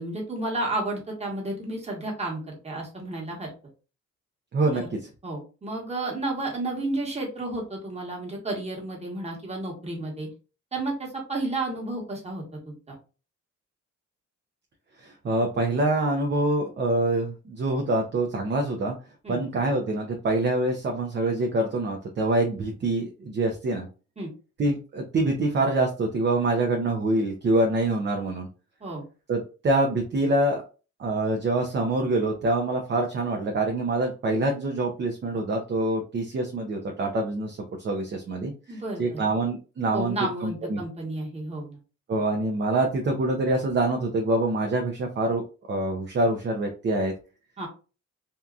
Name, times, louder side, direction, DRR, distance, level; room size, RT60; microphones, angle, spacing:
voice 1, 0.0-3.5 4.7-4.9 5.2-10.3 10.7-12.9 19.2-19.4 24.2-24.3 28.8-29.0 38.7-39.2 39.9-41.8 47.6-47.7, right 2 dB, 20° right, -2 dB, 1.3 m, -32 dB
voice 2, 4.5-5.0 15.0-18.9 19.3-23.9 24.6-28.5 29.3-30.6 31.0-40.2 40.4-40.8 42.1-45.4 45.7-47.1, right 2 dB, 35° right, 2 dB, 0.6 m, -25 dB
2.7 x 2.4 x 2.4 m, 0.34 s
cardioid pair, 90°, 30 cm